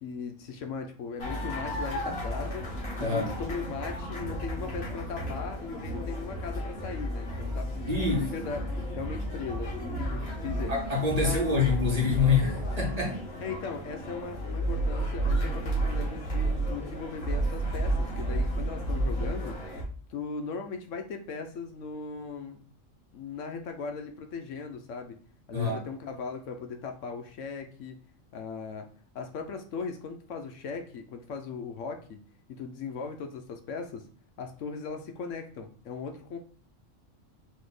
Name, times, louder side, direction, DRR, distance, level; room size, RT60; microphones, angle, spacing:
voice 1, 0.0-2.7 3.0-10.7 11.1-11.4 13.4-19.6 20.1-22.6 23.1-25.2 25.5-28.0 28.3-28.9 29.1-32.2 32.5-34.1 34.4-36.4, left 5 dB, 75° left, 1.0 m, -38 dB
sound 1, 1.2-19.8, right 1 dB, 50° left, 1.6 m, -32 dB
voice 2, 3.0-3.3 7.9-8.3 10.7-13.2 25.5-25.8, left 4 dB, 30° right, 1.1 m, -26 dB
4.1 x 2.8 x 3.9 m
omnidirectional pair, 1.3 m